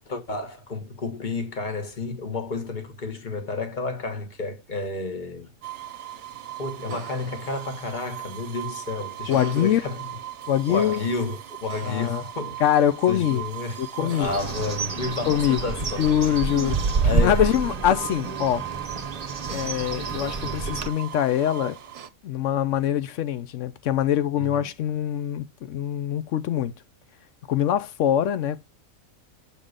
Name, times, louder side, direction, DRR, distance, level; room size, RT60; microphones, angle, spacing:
voice 1, 0.1-5.5 6.6-10.0 10.7-12.6 13.1-16.1 17.0-17.4 24.4-24.7, left 3 dB, 35° left, 1.4 m, -31 dB
sound 1, 5.6-22.1, right 11 dB, 65° right, 1.0 m, -38 dB
voice 2, 9.3-9.8 10.5-11.0 11.8-12.2 12.6-13.4 13.8-14.3 15.3-15.7 16.0-16.8 17.1-18.7 19.5-21.8 22.2-26.7 27.5-28.6, left 10 dB, 70° left, 0.9 m, -23 dB
Bird, 14.2-20.9, right 4 dB, 35° right, 0.7 m, -28 dB
7.1 x 3.7 x 6.5 m
omnidirectional pair, 1.4 m